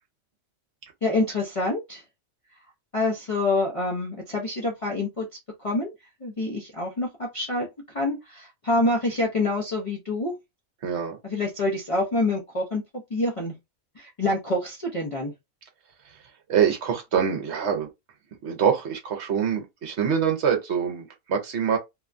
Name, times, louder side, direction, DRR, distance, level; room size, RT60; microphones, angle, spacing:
voice 1, 1.0-2.0 2.9-5.3 5.6-5.9 6.2-7.7 7.9-10.3 11.2-12.8 13.1-13.5 14.0-15.3, left 2 dB, 40° left, 0.5 m, -26 dB
voice 2, 10.8-11.2 16.5-17.9 18.4-21.8, right 7 dB, 60° right, 0.9 m, -24 dB
2.8 x 2.2 x 2.5 m
omnidirectional pair, 1.4 m